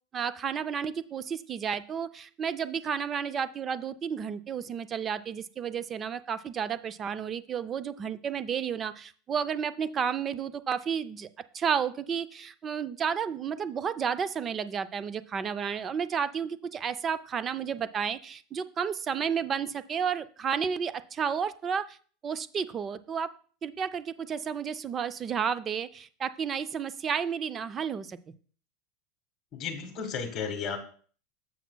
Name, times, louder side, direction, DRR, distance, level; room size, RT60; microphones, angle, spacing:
voice 1, 0.1-11.3 11.5-22.0 22.2-23.3 23.6-28.2, right 7 dB, 20° right, 14 dB, 0.3 m, -32 dB
voice 2, 29.5-30.8, left 6 dB, 25° left, 5 dB, 1.4 m, -33 dB
12.0 x 7.0 x 2.2 m, 0.44 s
supercardioid pair, 165°, 0 cm